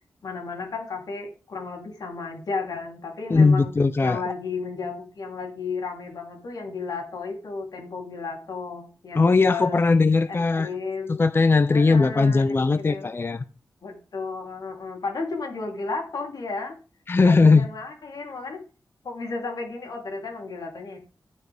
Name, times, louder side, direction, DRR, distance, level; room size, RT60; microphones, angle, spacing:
voice 1, 0.2-3.7 4.0-9.8 10.3-11.2 11.7-12.5 12.8-13.1 13.8-16.7 17.2-18.6 19.0-21.0, left 4 dB, 85° left, 3.3 m, -33 dB
voice 2, 3.3-4.2 9.1-10.7 11.1-13.4 17.1-17.7, left 4 dB, 35° left, 0.6 m, -19 dB
12.0 x 9.3 x 3.5 m
wide cardioid pair, 90°, 6 cm